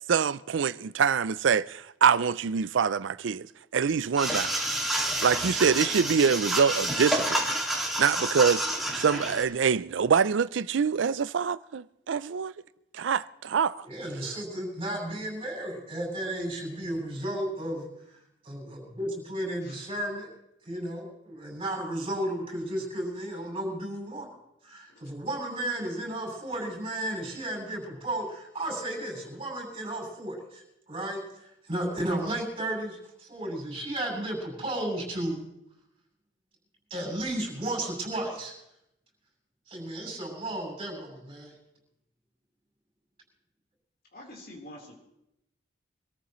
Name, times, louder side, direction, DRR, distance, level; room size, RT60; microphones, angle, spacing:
voice 1, 0.1-3.5 3.7-4.6 5.2-7.4 8.0-8.7 9.0-12.5 13.0-13.8, right 6 dB, 75° right, 0.4 m, -25 dB
sound 1, 4.2-9.4, right 1 dB, ahead, 2.2 m, -29 dB
voice 2, 13.9-17.9 18.4-20.3 20.6-24.3 24.6-30.6 30.9-35.4 36.9-38.6 39.7-41.5, right 1 dB, 30° right, 7.6 m, -33 dB
voice 3, 44.1-45.0, left 1 dB, 55° left, 3.9 m, -47 dB
25.5 x 14.0 x 3.1 m
head